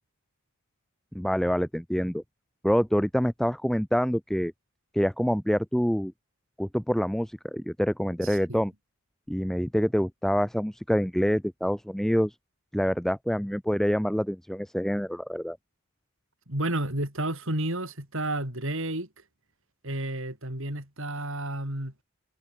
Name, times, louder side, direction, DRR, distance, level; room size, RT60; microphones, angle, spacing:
voice 1, 1.1-2.2 2.6-4.5 4.9-6.1 6.6-8.7 9.3-12.3 12.7-15.6, equal, ahead, 0.7 m, -26 dB
voice 2, 8.2-8.6 16.5-19.1 19.8-21.9, right 1 dB, 60° right, 7.2 m, -31 dB
head